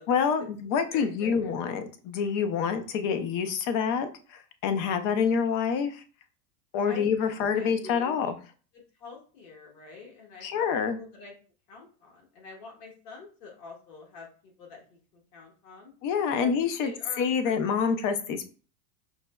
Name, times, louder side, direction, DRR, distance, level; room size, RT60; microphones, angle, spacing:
voice 1, 0.1-6.0 6.7-8.4 10.4-11.0 16.0-16.9 17.2-18.4, left 6 dB, 40° left, 9 dB, 0.5 m, -27 dB
voice 2, 0.9-1.5 6.9-8.1 8.7-10.7 11.0-11.3 11.7-15.9 16.4-17.8, left 4 dB, 80° left, 0 dB, 1.5 m, -46 dB
5.4 x 2.1 x 2.2 m, 0.38 s
supercardioid pair, 115°, 47 cm